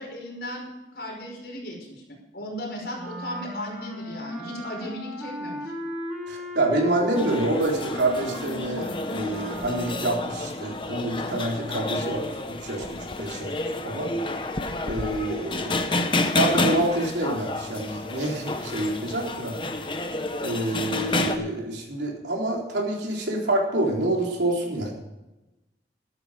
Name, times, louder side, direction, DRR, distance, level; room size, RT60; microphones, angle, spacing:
voice 1, 0.0-2.0 2.3-5.7, equal, 65° left, -1 dB, 5.4 m, -36 dB
Wind instrument woodwind instrument, 2.9-10.3, equal, 5° right, 3.6 m, -36 dB
voice 2, 6.3-12.9 13.2-13.5 13.8-14.1 14.8-15.9 16.3-19.6 20.4-24.9, right 1 dB, 85° right, -1 dB, 3.8 m, -27 dB
sound 1, 7.2-21.4, left 2 dB, 30° left, 1.0 m, -30 dB
13.0 x 13.0 x 5.1 m, 1.0 s
head